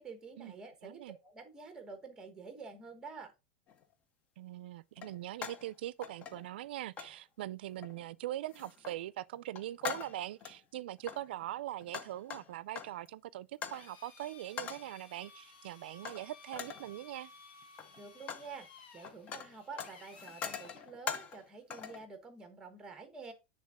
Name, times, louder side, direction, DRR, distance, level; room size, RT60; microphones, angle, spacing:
voice 1, 0.0-3.3 18.0-18.7 18.9-23.3, right 4 dB, 10° right, 1.0 m, -48 dB
voice 2, 0.8-1.2 4.4-17.3, right 14 dB, 75° right, 0.3 m, -42 dB
sound 1, 3.7-3.8 5.0-5.7 6.0-6.7 7.0-7.2 7.8-8.1 8.5-9.0 9.3-10.6 11.0-13.1 13.6-13.9 14.6-14.9 16.0-16.3 16.5-16.9 17.6-18.5 18.8-21.4 21.7-22.0, left 7 dB, 25° left, 0.5 m, -43 dB
Drill, 13.7-20.9, left 4 dB, 75° left, 1.7 m, -56 dB
8.7 x 3.6 x 3.5 m
supercardioid pair, 160°, 6 cm